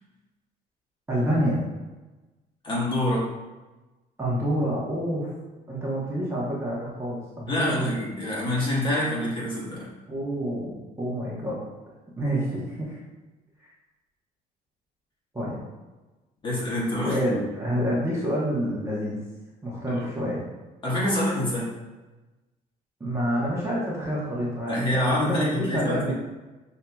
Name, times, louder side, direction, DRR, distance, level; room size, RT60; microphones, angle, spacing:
voice 1, 1.1-1.6 4.2-5.3 5.7-7.9 10.1-11.6 12.2-13.0 13.6-13.7 15.3-15.6 17.0-19.2 19.6-20.4 23.0-26.1, equal, 15° right, -6 dB, 0.9 m, -28 dB
voice 2, 2.6-3.3 7.5-9.9 16.4-17.2 19.9-20.0 20.8-21.7 24.7-26.1, left 1 dB, 30° left, -6 dB, 1.4 m, -26 dB
5.7 x 2.7 x 2.3 m, 1.1 s
cardioid pair, 110°, 17 cm